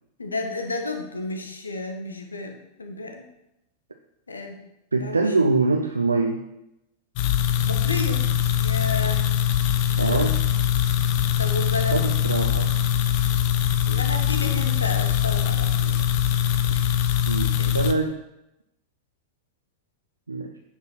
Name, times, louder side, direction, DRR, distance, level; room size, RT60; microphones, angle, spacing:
voice 1, 0.2-3.2 4.3-4.6 5.0-5.3 7.6-9.3 10.0-10.4 11.4-12.0 13.8-16.0 16.7-16.9 17.6-17.7, left 3 dB, 75° left, 5 dB, 1.2 m, -32 dB
voice 2, 4.9-6.4 10.0-10.3 11.9-12.7 16.6-16.7 17.3-18.2 20.3-20.6, right 3 dB, 80° right, 4 dB, 0.6 m, -24 dB
sound 1, 7.2-17.9, left 10 dB, 45° left, 0.7 m, -22 dB
9.7 x 5.6 x 5.9 m, 0.88 s
figure-of-eight pair, 90°, 0 cm